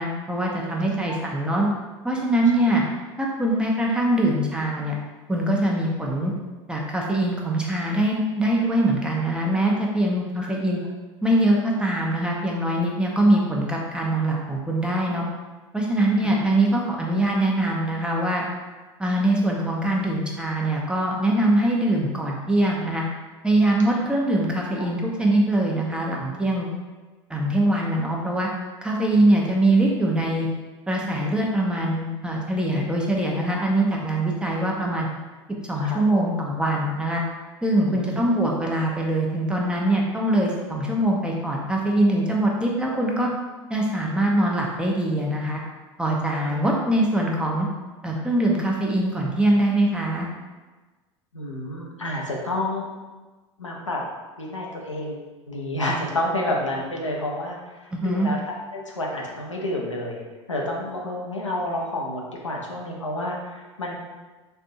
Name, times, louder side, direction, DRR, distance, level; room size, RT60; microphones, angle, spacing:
voice 1, 0.0-1.7 2.0-2.8 3.2-5.0 5.3-6.3 6.7-10.8 11.2-15.2 15.7-18.4 19.0-23.0 23.4-26.7 27.3-28.5 28.8-30.5 30.9-35.1 35.7-37.2 37.6-43.3 43.7-45.6 46.0-47.7 48.0-50.3 57.9-58.3, right 1 dB, 5° right, -2 dB, 0.6 m, -23 dB
voice 2, 35.8-36.2 37.9-38.2 46.4-46.5 51.3-52.8 53.6-54.0 54.4-60.2 60.5-63.9, left 1 dB, 85° left, -2 dB, 0.6 m, -30 dB
4.2 x 2.6 x 2.6 m, 1.3 s
figure-of-eight pair, 80°, 15 cm